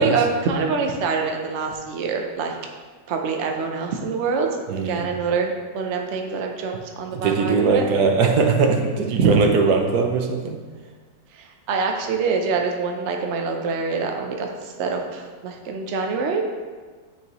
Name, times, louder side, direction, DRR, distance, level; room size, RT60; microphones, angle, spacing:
voice 1, 0.0-2.6 3.1-7.9 9.2-9.5 11.3-16.4, right 5 dB, 85° right, 3 dB, 0.6 m, -25 dB
voice 2, 7.1-10.6, right 4 dB, 65° right, 4 dB, 1.1 m, -20 dB
9.3 x 4.6 x 3.0 m, 1.5 s
omnidirectional pair, 2.1 m